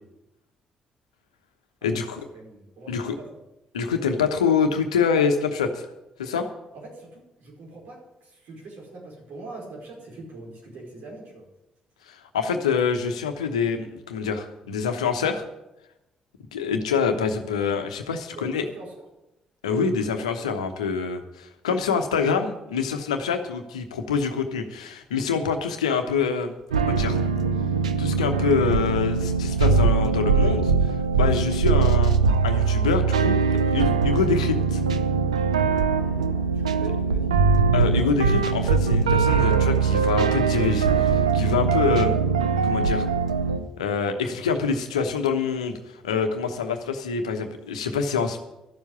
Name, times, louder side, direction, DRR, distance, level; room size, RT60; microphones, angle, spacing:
voice 1, 1.8-2.2 2.9-3.2 3.7-5.8 6.2-6.5 12.1-15.4 16.5-18.7 19.6-26.5 26.8-27.2 28.0-32.2 32.4-33.4 33.7-34.8 37.7-42.1 42.6-43.0 43.8-48.4, left 5 dB, 85° left, 6 dB, 1.0 m, -25 dB
voice 2, 2.3-3.4 6.7-11.5 18.3-18.9 36.0-37.3 37.7-38.2, right 2 dB, 60° right, -2 dB, 5.1 m, -43 dB
sound 1, 26.7-43.6, right 5 dB, 85° right, 0.6 m, -21 dB
12.5 x 7.2 x 8.5 m, 0.92 s
figure-of-eight pair, 45°, 3 cm